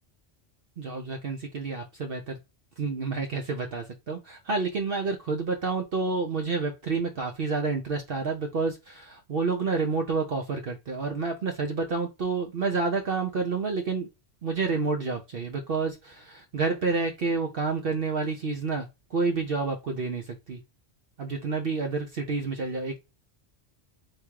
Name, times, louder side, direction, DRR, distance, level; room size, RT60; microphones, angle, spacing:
voice 1, 0.8-2.4 2.8-14.1 14.4-20.6 21.2-23.0, right 4 dB, 55° right, 3 dB, 0.9 m, -29 dB
3.6 x 3.0 x 4.6 m, 0.24 s
omnidirectional pair, 1.2 m